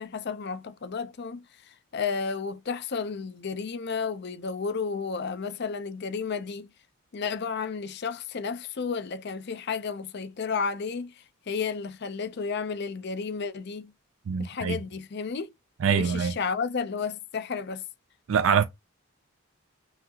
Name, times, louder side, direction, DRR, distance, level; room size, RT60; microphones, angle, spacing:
voice 1, 0.0-6.7 7.1-13.9 14.4-15.5 15.9-17.8, left 5 dB, 50° left, 0.5 m, -32 dB
voice 2, 14.3-14.8 15.8-16.3 18.3-18.6, right 7 dB, 70° right, 0.4 m, -24 dB
5.8 x 2.8 x 2.8 m
head